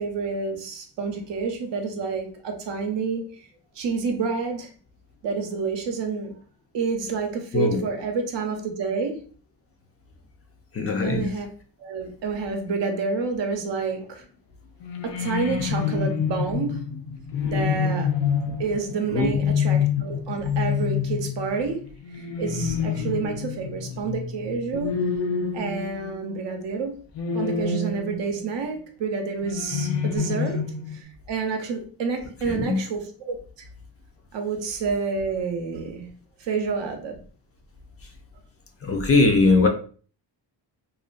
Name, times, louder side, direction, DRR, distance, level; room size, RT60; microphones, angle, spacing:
voice 1, 0.0-3.4 3.8-4.7 5.2-6.3 6.7-9.3 11.0-11.5 11.8-14.2 15.0-16.8 17.4-18.1 18.6-24.9 25.5-27.0 27.3-30.6 30.9-33.7 34.3-36.1 36.4-37.2, right 5 dB, 75° right, 4 dB, 0.7 m, -29 dB
voice 2, 7.5-7.8 10.7-11.3 19.1-19.4 32.4-32.8 38.8-39.7, left 3 dB, 35° left, 3 dB, 0.4 m, -20 dB
sound 1, 14.8-26.4 27.2-28.5 29.4-31.0, left 6 dB, 80° left, 0.5 m, -27 dB
2.4 x 2.2 x 2.4 m, 0.41 s
cardioid pair, 100°, 43 cm